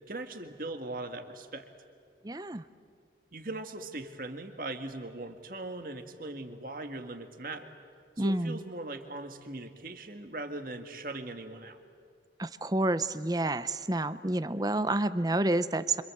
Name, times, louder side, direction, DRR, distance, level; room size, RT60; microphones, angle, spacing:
voice 1, 0.1-1.7 3.3-7.7 8.2-11.8, right 2 dB, 50° right, 6 dB, 1.9 m, -40 dB
voice 2, 2.2-2.6 8.2-8.6 12.4-16.0, right 2 dB, 20° right, 13 dB, 0.7 m, -29 dB
27.0 x 26.5 x 7.8 m, 2.2 s
head